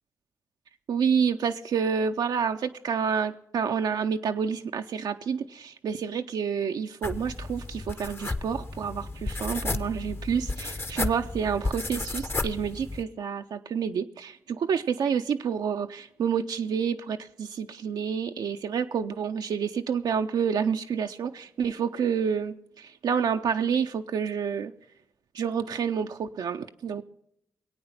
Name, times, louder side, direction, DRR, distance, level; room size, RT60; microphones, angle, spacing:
voice 1, 0.9-24.7 25.3-27.0, right 7 dB, 70° right, 5 dB, 0.5 m, -29 dB
sound 1, 7.0-13.0, left 2 dB, 35° left, 0.8 m, -33 dB
20.0 x 8.6 x 5.8 m, 0.75 s
supercardioid pair, 50°, 7 cm